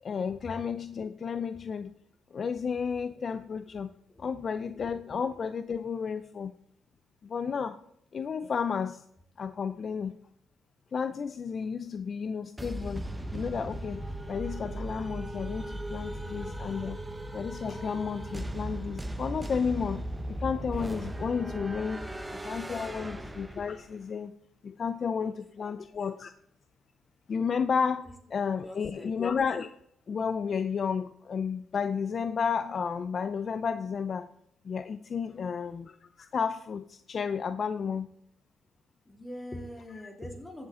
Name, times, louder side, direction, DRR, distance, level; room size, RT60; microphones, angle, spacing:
voice 1, 0.0-2.0 2.3-3.9 4.2-6.5 7.2-7.8 8.1-9.0 9.4-10.2 10.9-13.0 13.3-17.0 17.3-24.4 24.6-26.3 27.3-29.8 30.1-34.3 34.6-38.1, left 6 dB, 45° left, 11 dB, 0.4 m, -32 dB
sound 1, 12.6-24.0, right 1 dB, 10° right, 0.9 m, -37 dB
voice 2, 25.2-25.7 28.6-29.1 35.3-35.8 39.1-40.7, left 1 dB, 15° left, 2 dB, 2.8 m, -44 dB
15.5 x 7.1 x 3.7 m, 0.72 s
cardioid pair, 90°, 0 cm